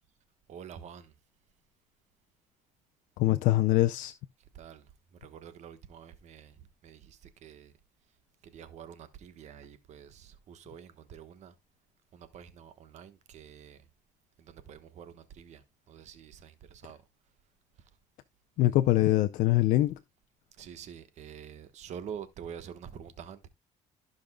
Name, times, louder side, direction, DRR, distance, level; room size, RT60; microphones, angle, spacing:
voice 1, 0.5-1.1 4.5-7.7 8.4-11.5 12.1-13.9 14.4-17.0 17.8-17.9 20.5-23.5, right 8 dB, 60° right, 1.2 m, -47 dB
voice 2, 3.2-4.1 18.6-20.0, left 16 dB, 80° left, 0.5 m, -23 dB
15.5 x 5.3 x 2.2 m
cardioid pair, 110°, 13 cm